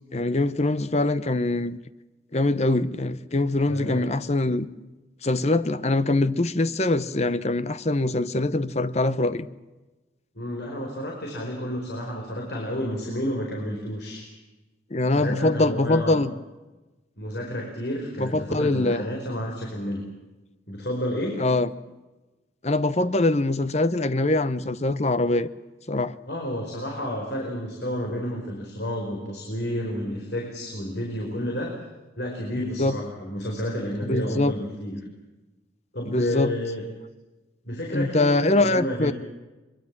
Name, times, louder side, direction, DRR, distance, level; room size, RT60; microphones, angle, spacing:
voice 1, 0.1-1.8 2.3-4.7 5.2-9.5 14.9-16.3 18.2-19.0 21.4-21.7 22.6-25.5 25.9-26.1 32.8-33.0 34.0-34.5 36.1-36.5 37.9-39.1, left 2 dB, 35° left, 14 dB, 0.9 m, -23 dB
voice 2, 3.7-4.0 10.3-14.3 15.1-16.2 17.2-20.0 20.7-21.4 26.3-31.7 32.2-35.0 35.9-36.8 37.6-39.1, equal, 65° left, 0 dB, 4.7 m, -30 dB
23.0 x 23.0 x 7.5 m, 1.1 s
head